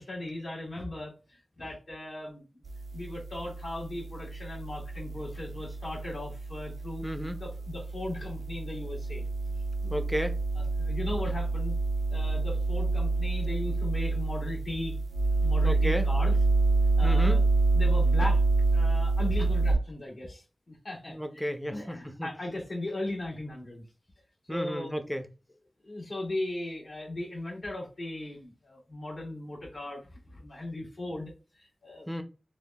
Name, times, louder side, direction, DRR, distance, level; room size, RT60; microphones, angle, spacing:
voice 1, 0.0-2.4 2.9-7.0 7.4-9.2 9.8-9.9 10.5-11.7 12.1-14.9 15.4-16.4 17.0-17.4 17.7-18.4 18.7-23.8 24.5-25.0 25.8-31.3 31.6-32.1, left 1 dB, 65° left, 1.5 m, -37 dB
sound 1, 2.7-19.7, right 3 dB, 80° right, 0.3 m, -27 dB
voice 2, 7.0-7.4 9.9-10.4 15.6-16.1 17.0-17.4 21.1-22.3 24.5-25.2 32.1-32.2, equal, 5° left, 0.4 m, -32 dB
3.4 x 2.1 x 2.2 m
wide cardioid pair, 80°, 0 cm